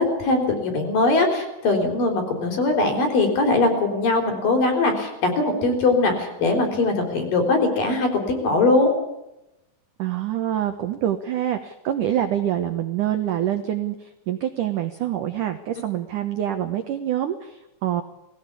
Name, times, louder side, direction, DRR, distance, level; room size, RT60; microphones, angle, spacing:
voice 1, 0.0-8.9, left 3 dB, 50° left, 4 dB, 5.4 m, -21 dB
voice 2, 10.0-18.0, right 11 dB, 75° right, 7 dB, 1.9 m, -26 dB
20.5 x 17.0 x 8.5 m, 0.91 s
omnidirectional pair, 5.4 m